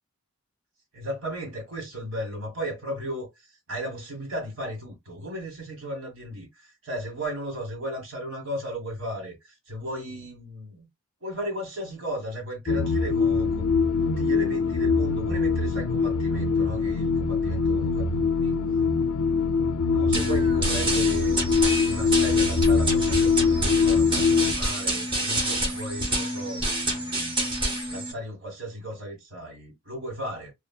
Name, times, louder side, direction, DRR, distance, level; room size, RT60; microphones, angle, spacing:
voice 1, 0.9-10.9 11.2-13.6 14.0-18.6 19.9-27.3 27.9-30.5, right 1 dB, 65° right, 1.5 m, -36 dB
sound 1, 12.7-24.5, left 5 dB, 75° left, 0.4 m, -23 dB
sound 2, 20.1-28.1, right 1 dB, 25° right, 0.8 m, -28 dB
2.7 x 2.6 x 2.2 m
head